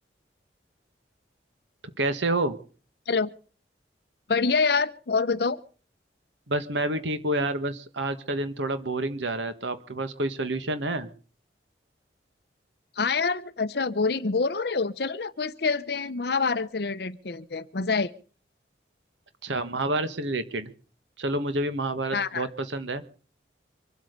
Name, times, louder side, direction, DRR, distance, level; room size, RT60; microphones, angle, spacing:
voice 1, 2.0-2.6 6.5-11.1 19.4-20.7 21.2-23.0, right 2 dB, 80° right, 10 dB, 1.5 m, -28 dB
voice 2, 4.3-5.6 13.0-18.1 22.1-22.5, left 4 dB, 60° left, 13 dB, 0.7 m, -26 dB
25.0 x 8.3 x 6.7 m, 0.40 s
head